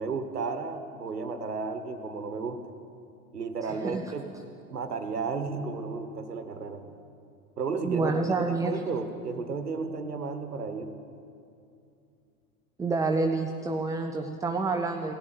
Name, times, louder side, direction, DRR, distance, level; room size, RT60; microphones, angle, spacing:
voice 1, 0.0-2.6 3.3-4.3 4.7-6.8 7.6-10.9, right 4 dB, 85° right, 8 dB, 1.2 m, -33 dB
voice 2, 3.7-4.0 7.8-8.8 12.8-15.1, right 3 dB, 5° right, 4 dB, 0.5 m, -28 dB
17.5 x 7.3 x 9.6 m, 2.6 s
figure-of-eight pair, 90°, 46 cm